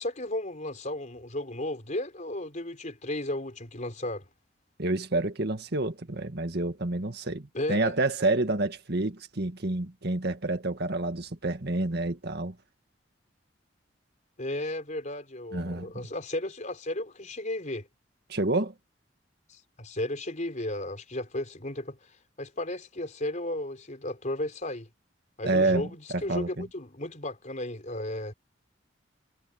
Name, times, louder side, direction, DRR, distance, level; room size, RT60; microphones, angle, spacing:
voice 1, 0.0-4.3 7.5-7.9 14.4-17.9 19.5-22.0 22.4-24.9 25.4-28.3, left 1 dB, 40° left, 4.3 m, -34 dB
voice 2, 4.8-12.6 15.5-15.9 18.3-18.7 25.4-26.7, right 2 dB, 55° right, 1.9 m, -28 dB
head